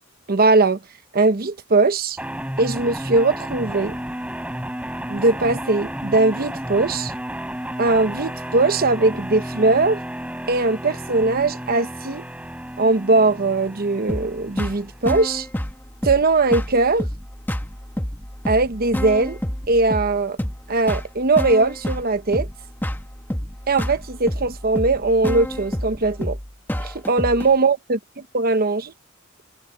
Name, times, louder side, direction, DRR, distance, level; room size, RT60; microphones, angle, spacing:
voice 1, 0.3-0.8 1.1-2.2 2.6-4.0 5.1-7.1 7.8-10.0 10.5-12.2 12.8-15.5 16.0-17.1 18.5-19.4 19.7-20.4 20.7-22.5 23.7-26.4 26.8-28.0 28.3-28.9, right 3 dB, 45° right, 1.0 m, -20 dB
sound 1, 2.2-15.2, equal, 5° right, 4.2 m, -32 dB
sound 2, 14.1-27.5, equal, 10° left, 1.6 m, -29 dB
head